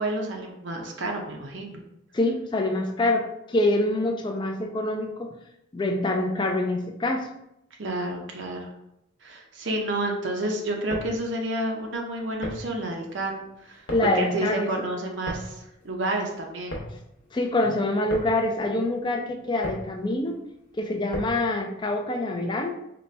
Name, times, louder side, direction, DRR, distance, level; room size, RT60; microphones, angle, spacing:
voice 1, 0.0-1.8 7.8-8.7 9.2-15.6 15.8-16.8, right 1 dB, 65° right, 1 dB, 0.5 m, -30 dB
voice 2, 2.1-5.3 5.7-7.3 13.9-14.7 17.3-20.3 20.8-22.7, left 2 dB, 25° left, 2 dB, 0.3 m, -25 dB
sound 1, 10.7-21.6, equal, 70° left, 0.8 m, -39 dB
4.0 x 2.2 x 3.2 m, 0.83 s
head